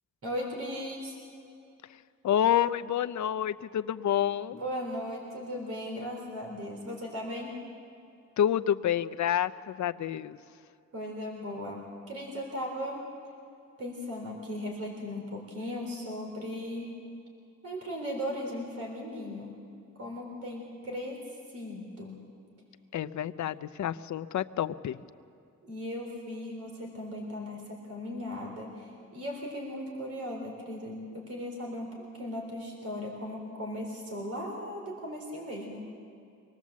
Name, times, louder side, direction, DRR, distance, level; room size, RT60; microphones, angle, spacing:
voice 1, 0.2-1.2 4.5-7.5 10.9-13.0 13.8-16.9 17.6-19.6 20.0-21.2 21.5-22.2 25.6-35.9, left 1 dB, 50° right, 0 dB, 3.8 m, -37 dB
voice 2, 2.2-4.6 8.4-10.4 22.9-25.0, left 10 dB, 75° left, 13 dB, 0.6 m, -28 dB
25.5 x 19.5 x 7.4 m, 2.5 s
wide cardioid pair, 160°, 30 cm